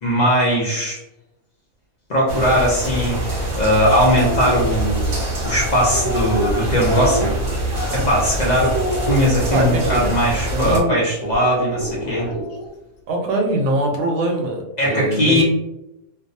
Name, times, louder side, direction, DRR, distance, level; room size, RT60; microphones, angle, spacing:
voice 1, 0.0-1.0 2.1-7.3 7.9-8.8 9.1-12.3 14.8-15.4, equal, 85° left, -4 dB, 0.3 m, -19 dB
sound 1, 2.3-10.8, right 1 dB, 55° right, 0.6 m, -25 dB
sound 2, 4.1-4.6 5.4-8.3 8.6-10.1 11.3-12.7, equal, 65° left, 0.9 m, -27 dB
voice 2, 9.5-10.1 10.5-11.0 13.1-15.4, right 1 dB, 80° right, 1 dB, 1.0 m, -22 dB
2.6 x 2.0 x 2.6 m, 0.89 s
omnidirectional pair, 1.5 m